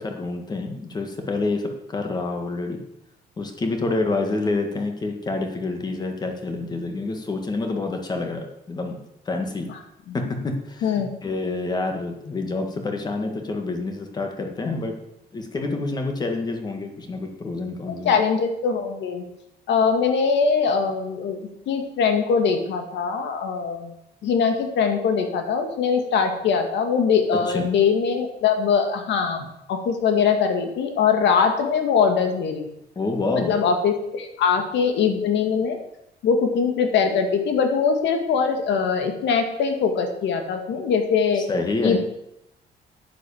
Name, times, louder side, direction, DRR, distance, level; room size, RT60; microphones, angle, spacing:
voice 1, 0.0-2.8 3.4-9.8 10.1-15.0 15.3-18.2 27.3-27.8 32.9-33.6 41.3-42.0, left 3 dB, 25° left, 4 dB, 1.7 m, -28 dB
voice 2, 17.9-19.2 19.7-21.4 21.7-23.9 24.2-32.7 33.3-35.8 36.2-41.4 41.8-42.0, left 6 dB, 85° left, 5 dB, 2.1 m, -22 dB
9.9 x 9.2 x 7.1 m, 0.85 s
cardioid pair, 175°, 18 cm